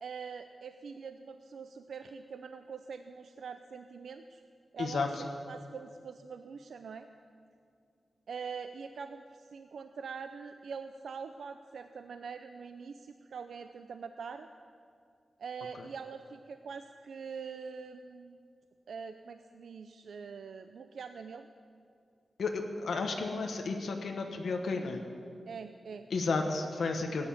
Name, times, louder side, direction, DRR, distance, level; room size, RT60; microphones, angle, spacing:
voice 1, 0.0-4.4 4.7-5.2 5.5-7.1 8.3-14.5 15.4-18.4 18.9-21.5 25.5-26.1 27.2-27.3, right 5 dB, 80° right, 8 dB, 0.5 m, -44 dB
voice 2, 4.8-5.3 15.7-15.9 22.4-25.0 26.1-27.3, left 4 dB, 75° left, 3 dB, 1.1 m, -32 dB
17.5 x 9.7 x 7.2 m, 2.3 s
wide cardioid pair, 135°, 0 cm